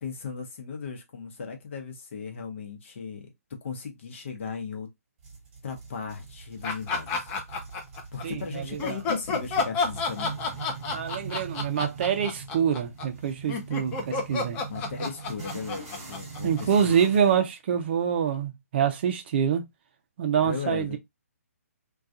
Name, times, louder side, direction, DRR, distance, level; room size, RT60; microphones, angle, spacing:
voice 1, 0.0-4.9 5.6-7.3 8.1-10.6 14.7-17.0 20.4-21.0, left 5 dB, 50° left, 0.8 m, -36 dB
sound 1, 5.2-17.3, right 5 dB, 25° right, 1.1 m, -42 dB
sound 2, 6.6-8.2 8.8-17.1, left 4 dB, 20° left, 0.5 m, -30 dB
voice 2, 8.2-9.0 10.9-14.6 16.4-19.6 20.2-21.0, right 8 dB, 40° right, 0.5 m, -26 dB
2.3 x 2.3 x 2.6 m
figure-of-eight pair, 140°, 8 cm